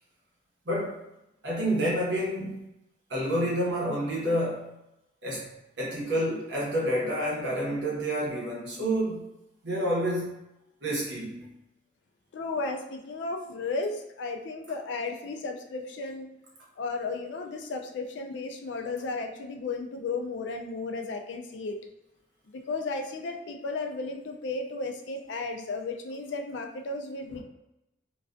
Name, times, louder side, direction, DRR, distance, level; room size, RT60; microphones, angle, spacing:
voice 1, 0.6-1.0 1.4-2.6 3.1-4.8 5.2-9.3 9.6-10.4 10.8-11.5 27.3-27.4, equal, 65° right, -5 dB, 0.9 m, -29 dB
voice 2, 12.3-16.3 16.8-21.8 22.5-27.4, left 3 dB, 65° left, 3 dB, 0.3 m, -34 dB
2.4 x 2.2 x 2.4 m, 0.87 s
head